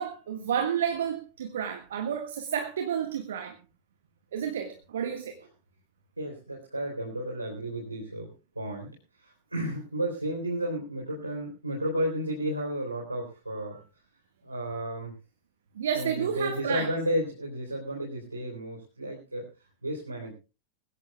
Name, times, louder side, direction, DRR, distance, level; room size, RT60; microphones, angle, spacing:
voice 1, 0.0-3.6 4.3-5.4 15.7-16.9, right 8 dB, 60° right, 6 dB, 1.6 m, -31 dB
voice 2, 6.2-8.9 9.2-13.8 14.4-15.1 15.9-19.5 19.8-20.3, right 1 dB, 85° right, -2 dB, 3.9 m, -32 dB
21.5 x 16.5 x 2.3 m, 0.31 s
figure-of-eight pair, 90°, 0 cm